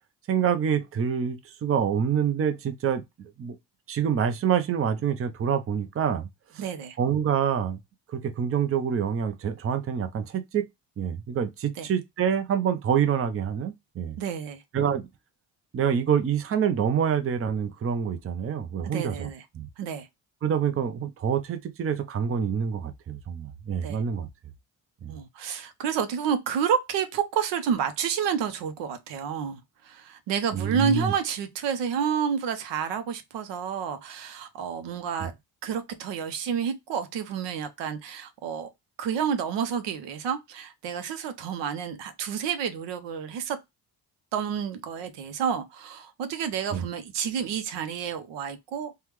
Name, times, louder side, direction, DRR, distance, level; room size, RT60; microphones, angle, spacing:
voice 1, 0.3-3.6 3.9-6.3 6.5-6.6 7.0-7.8 8.1-10.7 11.0-14.2 14.7-15.0 15.7-19.7 20.4-24.3 25.0-25.1 30.5-31.1 35.2-35.3 46.7-46.9, right 8 dB, 30° right, 0.6 m, -26 dB
voice 2, 6.6-7.0 11.8-11.9 14.2-14.6 18.8-19.4 19.8-20.1 23.8-24.0 25.1-29.6 29.8-35.3 35.6-38.7 39.0-43.6 44.3-48.9, right 7 dB, 80° right, 0.7 m, -29 dB
3.3 x 2.2 x 3.0 m
supercardioid pair, 70°, 43 cm